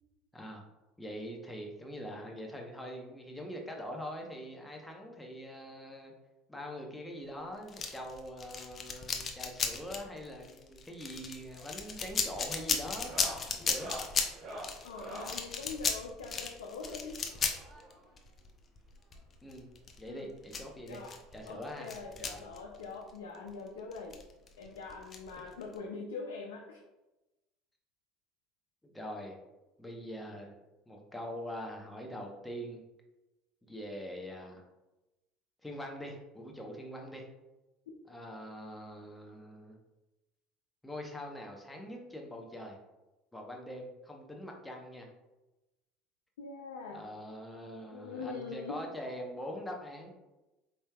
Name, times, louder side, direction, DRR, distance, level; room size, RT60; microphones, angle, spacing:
voice 1, 0.3-0.6 1.0-6.1 6.5-13.1 13.5-13.9 19.4-19.7 20.0-21.0 21.3-21.9 22.1-22.4 25.4-25.5 28.8-29.4 29.8-30.5 30.9-32.8 33.6-34.6 35.6-37.3 38.1-39.8 40.8-42.8 43.3-45.1 46.9-50.1, equal, 10° left, 1 dB, 0.9 m, -43 dB
sound 1, 7.7-23.1 23.3-23.5 23.9-25.8, left 5 dB, 35° left, 0.6 m, -36 dB
sound 2, 11.4-11.7 12.0-12.3 12.9-15.4 16.7-18.1 19.2-19.3 19.5-19.6 20.0-20.1 21.4-21.5 22.9-23.0, right 1 dB, 50° right, 0.9 m, -46 dB
voice 2, 14.8-17.2 20.1-20.3 20.8-21.1 21.5-24.2 24.6-26.8 46.4-47.1 47.9-48.8, left 4 dB, 85° left, -1 dB, 0.4 m, -43 dB
4.3 x 3.3 x 2.3 m, 1.0 s
hypercardioid pair, 80°, 0 cm